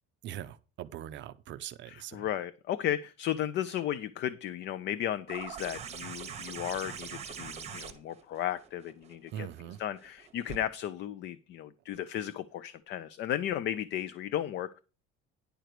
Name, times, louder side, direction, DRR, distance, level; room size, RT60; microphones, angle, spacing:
voice 1, 0.2-2.3 9.3-9.8, right 11 dB, 40° right, 0.5 m, -42 dB
voice 2, 1.9-14.8, left 11 dB, 40° left, 0.4 m, -35 dB
sound 1, 5.3-10.6 11.9-12.0, right 7 dB, 20° right, 1.0 m, -43 dB
10.0 x 4.5 x 6.6 m
cardioid pair, 170°, 29 cm